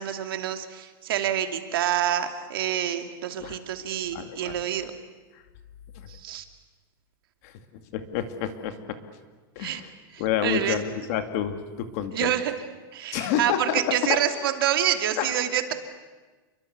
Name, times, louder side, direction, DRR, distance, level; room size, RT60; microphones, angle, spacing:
voice 1, 0.0-4.9 6.2-6.4 9.6-9.8 10.4-10.8 12.1-12.5 12.9-15.7, right 10 dB, 70° right, 6 dB, 2.7 m, -27 dB
voice 2, 4.1-4.6 5.3-5.4 6.0-6.1 7.4-7.5 7.9-9.0 9.6-9.9 10.2-12.3 13.1-14.2 15.2-15.4, left 9 dB, 40° left, 8 dB, 2.2 m, -29 dB
29.5 x 23.5 x 8.3 m, 1.3 s
supercardioid pair, 180°, 12 cm